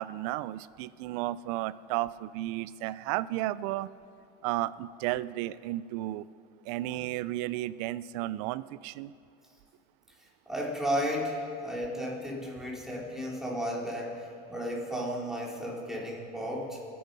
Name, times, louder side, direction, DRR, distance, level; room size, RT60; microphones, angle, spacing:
voice 1, 0.0-3.9 4.4-6.2 6.7-9.1, right 16 dB, 70° right, 18 dB, 0.5 m, -33 dB
voice 2, 10.2-16.8, equal, ahead, -4 dB, 3.4 m, -34 dB
28.0 x 9.5 x 5.4 m, 2.5 s
supercardioid pair, 140°, 20 cm